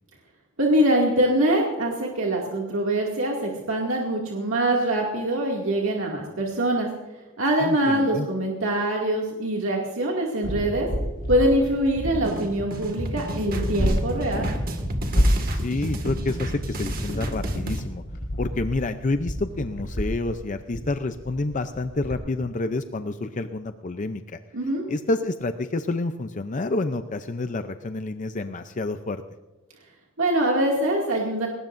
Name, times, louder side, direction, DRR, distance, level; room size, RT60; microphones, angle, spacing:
voice 1, 0.6-6.9 7.4-10.9 11.3-14.5 24.5-24.8 30.2-31.5, right 1 dB, 75° right, -2 dB, 2.4 m, -23 dB
voice 2, 7.6-8.3 15.5-18.0 18.4-24.4 24.9-29.2, left 2 dB, 40° left, 9 dB, 0.6 m, -28 dB
sound 1, 10.4-22.1, equal, 60° left, 4.4 m, -29 dB
sound 2, 12.2-17.8, right 1 dB, 45° right, 2.0 m, -31 dB
20.5 x 19.5 x 2.6 m, 1.2 s
head